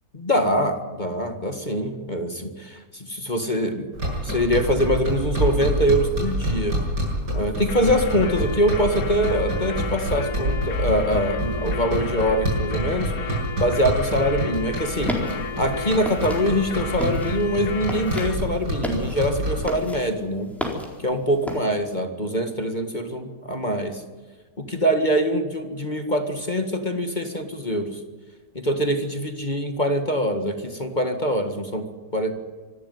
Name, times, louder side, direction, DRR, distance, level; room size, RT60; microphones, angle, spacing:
voice 1, 0.1-3.9 4.2-6.8 7.3-13.1 13.6-15.1 15.6-20.5 21.0-24.0 24.6-28.0 28.5-31.8 32.1-32.3, equal, 25° left, 6 dB, 1.9 m, -24 dB
sound 1, 3.9-19.7, equal, 75° right, 7.7 m, -28 dB
sound 2, 7.7-18.4, left 5 dB, 55° left, 1.7 m, -33 dB
sound 3, 14.9-21.6, left 1 dB, ahead, 4.1 m, -33 dB
26.0 x 13.5 x 9.3 m, 1.4 s
omnidirectional pair, 1.9 m